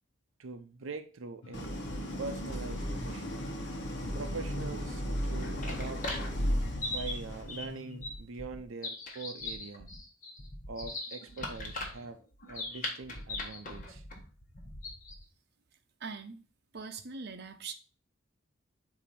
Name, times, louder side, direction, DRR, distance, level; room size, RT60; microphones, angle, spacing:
voice 1, 0.4-1.7 2.2-3.4 4.1-6.1 6.9-9.9 10.7-12.2 12.5-14.0, right 4 dB, 90° right, 0.6 m, -43 dB
sound 1, 1.4-8.2, left 2 dB, 85° left, 0.7 m, -45 dB
Idling, 1.5-7.6, equal, 60° left, 1.2 m, -35 dB
sound 2, 5.1-15.3, left 2 dB, 40° left, 1.4 m, -40 dB
voice 2, 16.0-16.4 16.7-17.7, right 4 dB, 55° right, 0.7 m, -41 dB
8.3 x 2.8 x 4.2 m
head